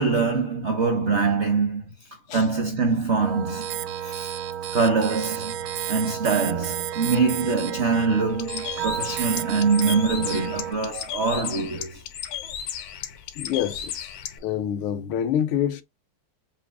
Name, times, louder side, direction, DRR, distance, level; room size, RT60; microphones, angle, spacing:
voice 1, 0.0-1.9 2.3-4.3 4.7-5.6 5.9-12.0, right 4 dB, 60° right, 0.7 m, -24 dB
sound 1, 3.2-10.7, right 10 dB, 80° right, 1.4 m, -31 dB
Bird, 8.3-14.4, left 9 dB, 70° left, 1.3 m, -35 dB
voice 2, 13.4-14.1 14.4-15.8, left 10 dB, 85° left, 1.5 m, -26 dB
7.2 x 2.6 x 2.5 m
omnidirectional pair, 2.3 m